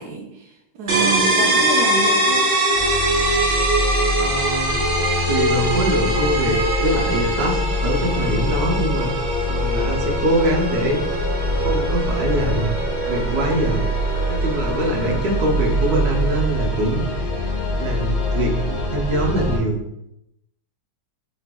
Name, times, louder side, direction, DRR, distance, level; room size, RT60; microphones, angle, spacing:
voice 1, 0.0-2.4, right 4 dB, 80° right, 1 dB, 0.8 m, -28 dB
sound 1, 0.9-16.4, right 1 dB, 45° right, 0.7 m, -23 dB
sound 2, 2.7-19.6, left 1 dB, 75° left, 0.6 m, -24 dB
voice 2, 4.2-4.8 5.3-9.1 9.5-11.2 11.5-12.8 13.0-13.8 14.3-17.0 17.8-19.8, right 1 dB, 60° right, -1 dB, 1.1 m, -23 dB
3.9 x 3.2 x 3.5 m, 0.83 s
omnidirectional pair, 2.3 m